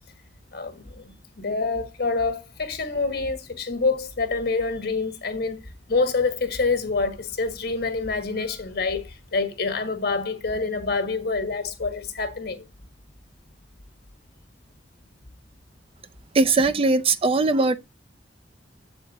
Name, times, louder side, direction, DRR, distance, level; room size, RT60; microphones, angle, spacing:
voice 1, 0.5-12.6, left 4 dB, 60° left, 1.4 m, -27 dB
voice 2, 16.3-17.8, right 3 dB, 30° right, 0.5 m, -20 dB
7.9 x 4.3 x 4.0 m
head